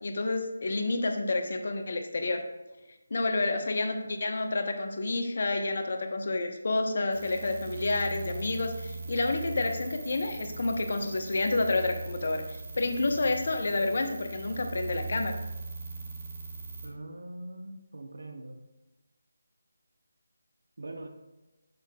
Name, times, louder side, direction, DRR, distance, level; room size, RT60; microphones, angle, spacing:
voice 1, 0.0-2.4 3.1-15.3, left 2 dB, 55° left, 6 dB, 0.9 m, -29 dB
sound 1, 7.1-16.9, right 3 dB, 30° right, 1.1 m, -40 dB
voice 2, 16.8-18.6 20.8-21.1, right 2 dB, 70° right, 5 dB, 0.7 m, -42 dB
8.2 x 6.5 x 2.3 m, 1.1 s
figure-of-eight pair, 160°, 0 cm